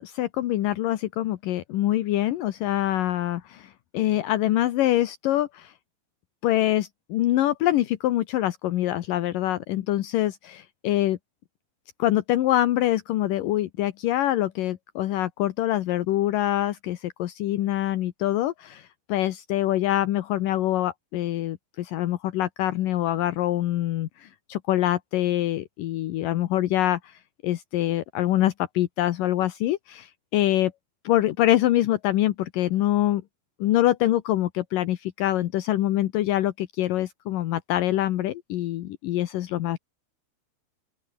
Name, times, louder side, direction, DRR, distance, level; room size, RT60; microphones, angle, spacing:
voice 1, 0.0-5.7 6.4-11.2 12.0-30.7 31.0-33.2 33.6-39.8, left 14 dB, 70° left, 2.1 m, -25 dB
open air
omnidirectional pair, 5.2 m